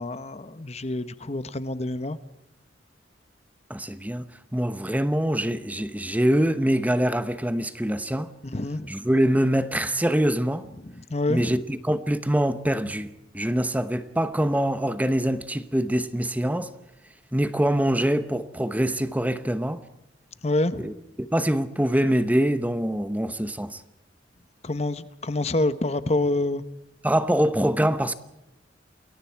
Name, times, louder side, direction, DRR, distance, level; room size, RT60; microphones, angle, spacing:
voice 1, 0.0-2.2 8.5-8.9 10.8-11.6 20.4-20.9 24.6-26.6, left 2 dB, 35° left, 1.0 m, -27 dB
voice 2, 3.7-4.2 4.5-8.3 8.9-10.6 11.3-16.7 17.3-19.8 20.8-20.9 21.3-23.8 27.0-28.1, right 1 dB, 10° right, 0.9 m, -24 dB
29.0 x 22.0 x 4.7 m
head